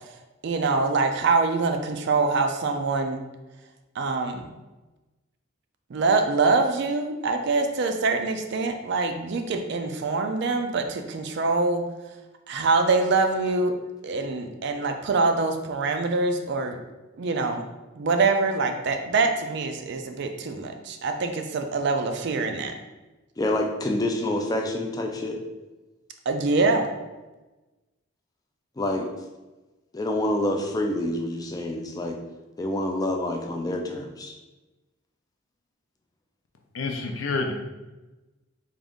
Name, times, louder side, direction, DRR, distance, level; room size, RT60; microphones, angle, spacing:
voice 1, 0.4-3.2 4.0-4.5 5.9-11.8 12.5-13.7 14.0-16.8 17.2-17.6 18.0-22.7 26.3-26.9, right 3 dB, 55° right, 6 dB, 0.4 m, -24 dB
voice 2, 23.4-25.4 28.8-29.1 29.9-32.2 32.6-34.4, left 1 dB, 20° left, 2 dB, 0.4 m, -27 dB
voice 3, 36.7-37.5, left 3 dB, 70° left, 4 dB, 0.5 m, -28 dB
3.6 x 2.6 x 3.5 m, 1.1 s
head